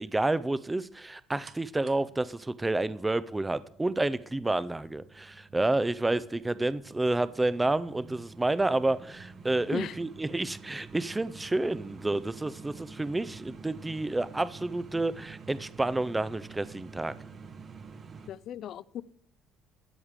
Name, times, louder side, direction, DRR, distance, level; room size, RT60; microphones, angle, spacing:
voice 1, 0.0-17.1, right 2 dB, 10° right, 0.4 m, -29 dB
sound 1, 1.5-18.3, right 5 dB, 35° right, 1.0 m, -49 dB
voice 2, 18.3-19.0, left 10 dB, 60° left, 0.4 m, -37 dB
13.0 x 4.9 x 7.3 m
cardioid pair, 125°, 0 cm